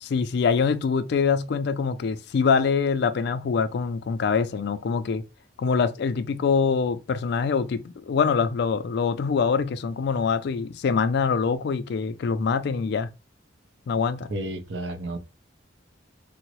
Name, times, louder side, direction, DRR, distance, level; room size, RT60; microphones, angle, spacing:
voice 1, 0.0-5.2 5.6-13.1 13.9-14.3, left 5 dB, 60° left, 0.3 m, -24 dB
voice 2, 14.3-15.2, right 1 dB, 75° right, 0.6 m, -31 dB
3.7 x 2.0 x 2.9 m
head